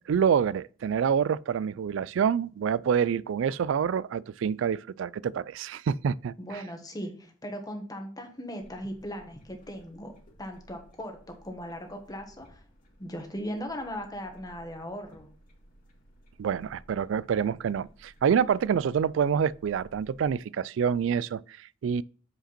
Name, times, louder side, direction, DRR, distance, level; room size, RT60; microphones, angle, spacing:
voice 1, 0.1-6.6 16.4-22.0, right 7 dB, 70° right, 0.3 m, -27 dB
voice 2, 6.4-10.1 10.4-12.6 13.0-15.3, equal, 20° left, 1.5 m, -38 dB
sound 1, 8.6-20.3, right 1 dB, 45° left, 1.9 m, -57 dB
7.7 x 5.1 x 4.3 m
head